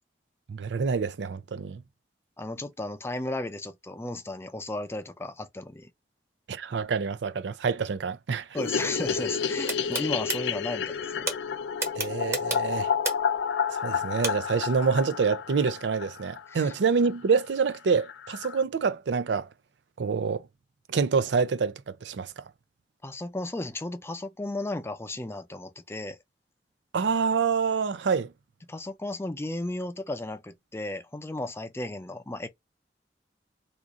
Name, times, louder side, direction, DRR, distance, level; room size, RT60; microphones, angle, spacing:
voice 1, 0.5-1.8 6.5-8.5 12.0-12.9 13.8-19.5 20.0-20.4 20.9-22.3 26.9-28.3, right 5 dB, 80° right, 0.4 m, -27 dB
voice 2, 2.4-5.9 8.5-11.3 16.5-16.7 23.0-26.2 28.7-32.5, left 2 dB, 15° left, 0.4 m, -34 dB
sound 1, 8.6-16.8 17.0-17.1 17.4-17.5 17.7-17.8 18.1-18.6, left 7 dB, 75° left, 0.4 m, -30 dB
sound 2, 9.7-10.4 11.3-11.4 11.8-13.4 14.2-14.3, right 2 dB, 15° right, 0.9 m, -29 dB
2.9 x 2.5 x 3.7 m
head